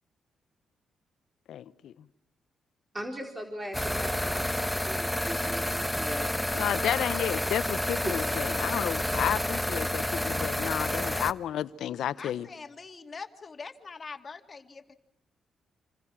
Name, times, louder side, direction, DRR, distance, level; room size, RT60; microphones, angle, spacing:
voice 1, 1.5-1.9 6.5-12.5, left 10 dB, 75° left, 0.9 m, -31 dB
voice 2, 2.9-6.8, equal, 20° right, 4.2 m, -40 dB
sound 1, 3.7-11.3, left 1 dB, 5° left, 1.1 m, -30 dB
voice 3, 12.2-14.9, left 4 dB, 40° left, 2.4 m, -43 dB
28.0 x 26.5 x 6.2 m
supercardioid pair, 60°, 0 cm